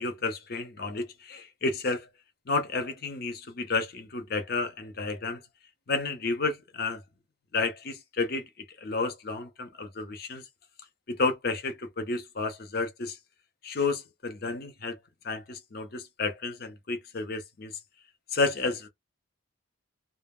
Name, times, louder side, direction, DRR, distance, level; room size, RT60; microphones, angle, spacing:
voice 1, 0.0-2.1 2.5-5.4 5.9-7.0 7.5-8.5 8.8-10.4 11.1-13.2 13.6-15.0 15.2-17.7 18.3-18.9, left 3 dB, 50° left, 0.6 m, -31 dB
2.2 x 2.0 x 3.5 m
head